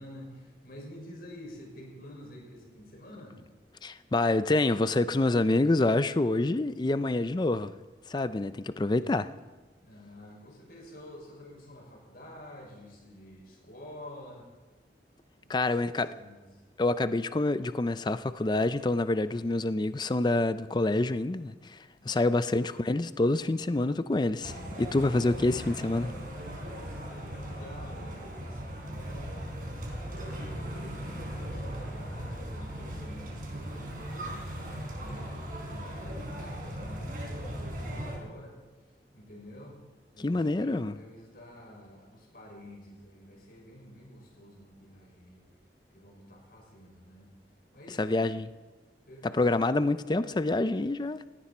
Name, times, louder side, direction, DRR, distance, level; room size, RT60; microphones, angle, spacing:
voice 1, 0.0-3.4 9.8-14.5 15.3-16.4 22.0-22.4 26.2-29.6 30.1-34.3 35.0-38.6 39.1-39.8 40.1-45.4 45.9-47.3 47.7-48.2 49.1-49.4, left 1 dB, 60° left, 6.1 m, -49 dB
voice 2, 3.8-7.7 8.1-9.3 15.5-16.1 16.8-21.8 22.1-26.1 40.2-41.0 48.0-48.5 49.3-51.2, left 2 dB, 25° left, 0.4 m, -27 dB
sound 1, 24.4-38.2, equal, 50° right, 4.6 m, -38 dB
18.5 x 16.5 x 4.4 m
head